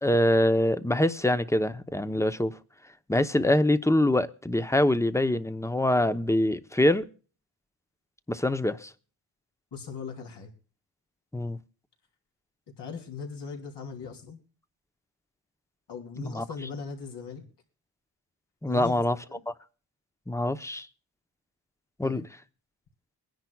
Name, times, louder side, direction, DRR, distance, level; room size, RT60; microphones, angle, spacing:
voice 1, 0.0-2.6 3.1-7.0 8.3-8.9 11.3-11.6 16.2-16.4 18.6-19.2 19.5-19.6 20.3-20.9 22.0-22.3, left 1 dB, 5° left, 0.8 m, -24 dB
voice 2, 9.7-10.5 12.8-14.4 15.9-17.5 18.6-19.0 19.3-19.4 22.0-22.2, left 5 dB, 70° left, 3.2 m, -39 dB
23.5 x 10.5 x 2.3 m
cardioid pair, 75°, 42 cm